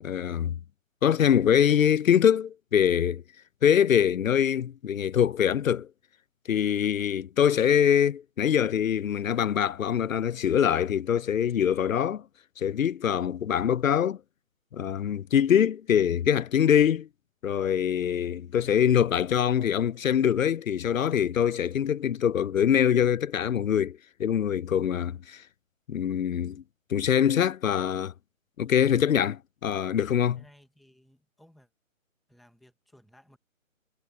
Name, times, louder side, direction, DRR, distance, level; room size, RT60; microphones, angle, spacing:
voice 1, 0.0-0.5 1.0-3.2 3.6-5.9 6.5-12.2 12.6-14.2 14.7-17.1 17.4-25.4 25.9-26.6 26.9-28.1 28.6-30.4, left 9 dB, 75° left, 0.6 m, -24 dB
voice 2, 30.3-31.7 32.3-33.4, equal, ahead, 0.9 m, -58 dB
hypercardioid pair, 175°, 40 cm